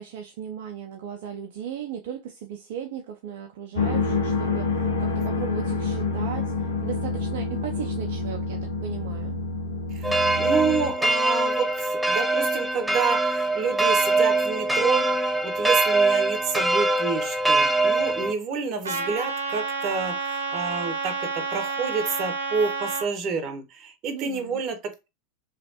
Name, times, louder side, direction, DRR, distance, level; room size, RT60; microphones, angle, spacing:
voice 1, 0.0-9.4 24.1-24.6, right 8 dB, 60° right, 0.4 m, -37 dB
sound 1, 3.8-10.9, left 3 dB, 75° left, 0.7 m, -27 dB
voice 2, 9.9-25.1, right 5 dB, 40° right, 0.9 m, -29 dB
sound 2, 10.0-18.3, right 2 dB, 5° right, 0.4 m, -23 dB
Trumpet, 18.8-23.1, right 4 dB, 85° right, 0.8 m, -30 dB
3.0 x 2.4 x 2.8 m
hypercardioid pair, 90°, 0 cm